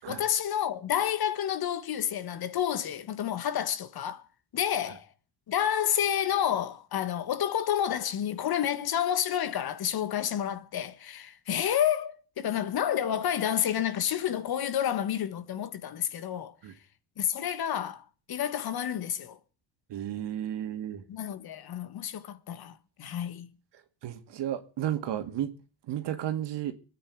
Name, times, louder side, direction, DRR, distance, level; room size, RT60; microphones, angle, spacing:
voice 1, 0.0-4.2 4.5-5.1 5.5-16.5 17.2-19.4 21.1-23.5, left 10 dB, 55° left, 1.7 m, -30 dB
voice 2, 19.9-21.0 24.0-25.5 25.9-26.7, right 11 dB, 65° right, 2.3 m, -33 dB
24.5 x 9.4 x 4.8 m
supercardioid pair, 85°, 45 cm